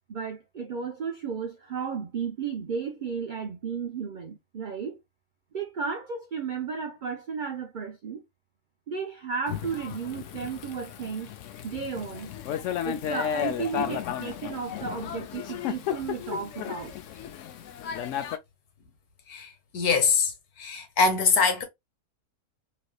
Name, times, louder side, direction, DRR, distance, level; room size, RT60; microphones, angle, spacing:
voice 1, 0.1-5.0 5.5-8.2 8.9-11.3 11.6-12.3 12.8-16.9, right 6 dB, 70° right, 0.4 m, -34 dB
Thunder / Rain, 9.5-18.4, left 10 dB, 70° left, 0.8 m, -34 dB
voice 2, 19.3-21.6, left 5 dB, 85° left, 1.5 m, -24 dB
3.3 x 2.9 x 2.3 m
omnidirectional pair, 1.5 m